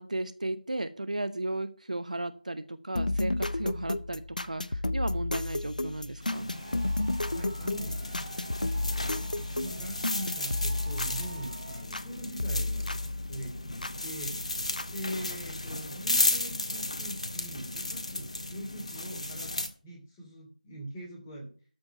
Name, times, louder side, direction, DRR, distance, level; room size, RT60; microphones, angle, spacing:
voice 1, 0.0-6.5, right 2 dB, 60° right, 11 dB, 1.0 m, -35 dB
sound 1, 3.0-12.1 12.4-14.0 14.8-14.9, left 2 dB, 65° left, 0.7 m, -32 dB
sound 2, 6.2-19.7, left 2 dB, 50° left, 1.6 m, -35 dB
sound 3, 6.5-11.8, right 2 dB, 15° right, 2.4 m, -49 dB
voice 2, 7.3-8.2 8.7-13.0 13.3-14.4 14.9-19.6 19.8-21.5, equal, 10° left, -2 dB, 2.7 m, -42 dB
13.0 x 4.9 x 7.5 m, 0.39 s
figure-of-eight pair, 165°, 5 cm